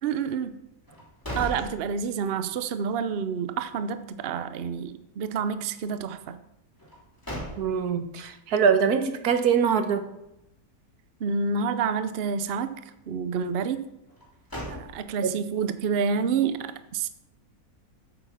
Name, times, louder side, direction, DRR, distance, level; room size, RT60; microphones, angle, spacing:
voice 1, 0.0-0.6 1.4-6.4 11.2-12.7 13.1-13.9 14.7-17.1, right 6 dB, 55° right, 11 dB, 0.7 m, -28 dB
sound 1, 0.8-2.5 2.9-3.0 6.8-8.1 14.1-15.4, equal, 15° left, 2.8 m, -38 dB
voice 2, 7.6-10.0 15.2-15.4, right 7 dB, 80° right, 8 dB, 1.5 m, -23 dB
8.8 x 8.0 x 5.8 m, 0.85 s
omnidirectional pair, 1.6 m